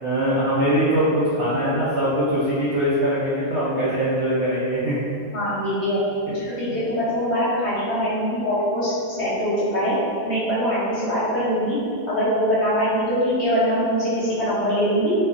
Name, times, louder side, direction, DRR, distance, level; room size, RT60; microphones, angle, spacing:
voice 1, 0.0-5.0 6.3-6.4 6.7-6.8, equal, 65° right, -10 dB, 0.7 m, -22 dB
voice 2, 5.3-6.0 6.4-9.9 10.3-11.8 12.1-15.1, equal, 50° left, -10 dB, 0.9 m, -23 dB
4.1 x 2.4 x 2.5 m, 2.4 s
omnidirectional pair, 1.8 m